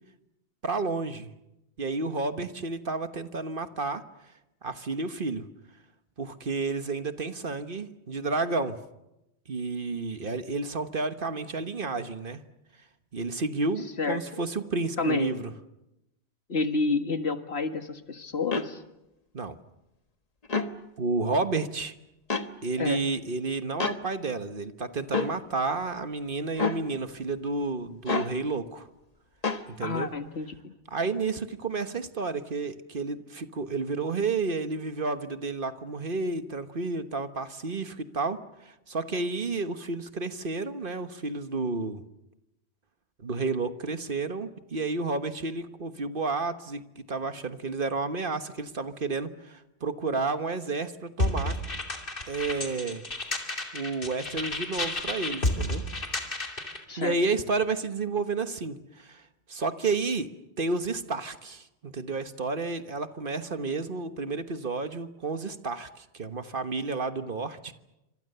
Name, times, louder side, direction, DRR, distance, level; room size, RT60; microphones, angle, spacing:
voice 1, 0.6-1.3 1.8-4.0 4.6-5.5 6.2-8.8 9.5-12.4 13.1-15.5 19.3-19.6 21.0-21.9 22.6-28.9 29.7-30.1 30.9-42.0 43.2-51.6 52.3-53.0 53.7-55.8 57.0-59.2 59.5-60.3 60.6-67.7, right 3 dB, 55° right, 10 dB, 1.4 m, -31 dB
voice 2, 15.0-15.3 16.5-18.8 22.8-23.0 29.8-30.7 56.9-57.2, left 4 dB, 70° left, 8 dB, 2.0 m, -29 dB
sound 1, 18.5-18.7 20.4-20.7 22.3-22.5 23.8-24.0 25.1-25.3 26.6-26.8 28.1-28.3 29.4-29.6, left 4 dB, 35° left, 1.3 m, -28 dB
sound 2, 51.2-56.8, left 1 dB, 55° left, 3.0 m, -31 dB
28.5 x 25.5 x 6.8 m, 0.92 s
omnidirectional pair, 1.1 m